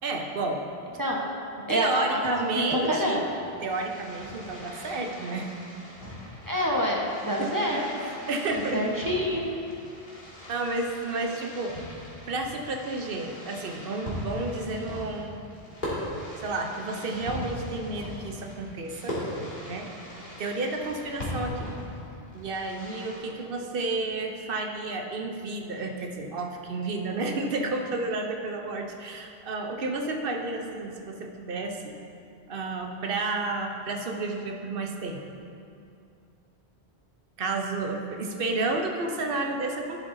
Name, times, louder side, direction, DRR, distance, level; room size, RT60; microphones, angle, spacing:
voice 1, 0.0-0.6 1.6-3.2 3.6-5.5 7.4-7.5 8.3-8.8 10.5-11.7 12.3-15.4 16.4-19.1 19.6-19.9 20.4-21.7 22.3-31.9 32.5-35.2 37.4-40.0, right 2 dB, 60° right, 3 dB, 0.9 m, -31 dB
voice 2, 1.0-1.4 1.7-3.2 6.5-8.1 8.7-9.4, equal, 20° right, -3 dB, 0.9 m, -27 dB
Fireworks, 3.4-23.2, equal, 50° left, 2.2 m, -39 dB
12.0 x 7.5 x 2.6 m, 2.5 s
omnidirectional pair, 1.1 m